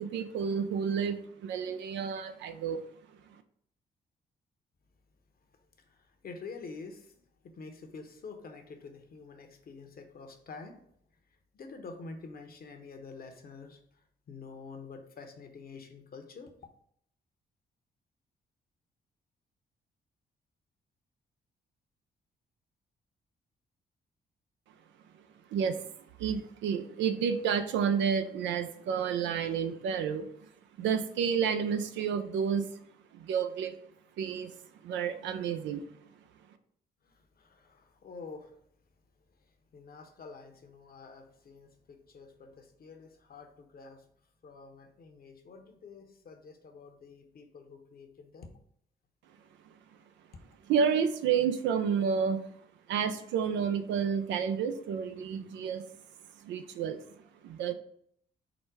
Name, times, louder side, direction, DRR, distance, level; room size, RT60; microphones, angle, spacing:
voice 1, 0.0-2.8 25.5-25.8 26.2-30.3 30.8-32.7 33.1-33.7 34.2-34.5 34.8-35.8 50.7-52.4 52.9-55.8 56.4-57.0 57.4-57.7, right 7 dB, 75° right, 9 dB, 0.5 m, -30 dB
voice 2, 5.9-7.1 7.4-10.8 11.5-13.8 14.3-16.5 37.1-38.5 39.7-44.0 44.4-48.5, left 4 dB, 55° left, 5 dB, 0.9 m, -48 dB
4.9 x 2.1 x 4.7 m, 0.66 s
supercardioid pair, 50°, 19 cm